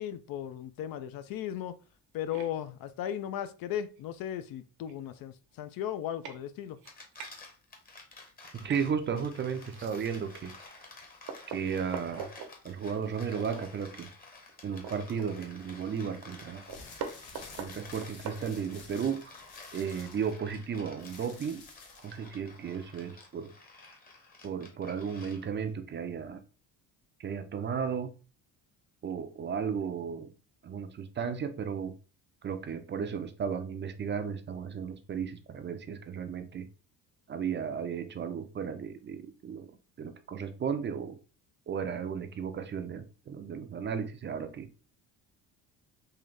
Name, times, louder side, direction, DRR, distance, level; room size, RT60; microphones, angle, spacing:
voice 1, 0.0-1.8 2.1-6.8, left 10 dB, 65° left, 0.5 m, -36 dB
sound 1, 2.3-2.5 4.0-4.1 4.6-4.7 4.9-5.2 5.8-5.9 6.2-6.4 6.8-7.3 8.6-8.9 9.6-10.3 10.8-10.9 11.3-12.5 13.3-13.7 14.0-14.1 14.5-15.7 16.0-16.1 16.4-18.9, right 6 dB, 75° right, 0.9 m, -42 dB
sound 2, 6.7-25.7, left 3 dB, 25° left, 0.9 m, -52 dB
voice 2, 8.5-10.5 11.5-12.3 12.6-14.1 14.6-16.6 17.6-19.3 19.7-21.6 22.0-23.5 24.4-26.4 27.2-28.1 29.0-30.3 30.6-31.9 32.4-36.7 37.3-39.7 40.0-41.2 41.7-44.7, right 7 dB, 30° right, 0.4 m, -34 dB
sound 3, 16.6-22.2, left 4 dB, 90° left, 1.1 m, -51 dB
3.8 x 2.6 x 3.2 m
cardioid pair, 120°, 37 cm